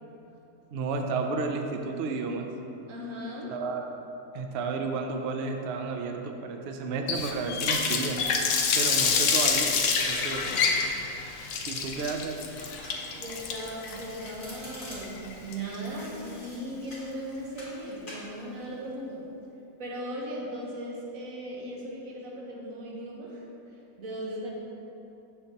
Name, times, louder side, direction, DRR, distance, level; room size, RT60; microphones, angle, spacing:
voice 1, 0.7-2.5 3.5-3.9 4.3-8.2 8.7-10.5 11.7-12.4, right 4 dB, 80° right, 4 dB, 0.5 m, -32 dB
voice 2, 2.9-3.5 9.0-9.2 13.1-19.2 19.8-23.4 24.0-24.5, right 1 dB, 60° right, -3 dB, 1.4 m, -37 dB
Water tap faucet, 7.1-16.0, left 5 dB, 65° left, 0.8 m, -27 dB
Domestic sounds home sounds, 12.6-13.3 13.6-15.3 15.9-17.1 17.6-17.8 18.1-18.3, left 1 dB, 35° left, 1.6 m, -46 dB
7.0 x 6.5 x 2.8 m, 3.0 s
omnidirectional pair, 1.7 m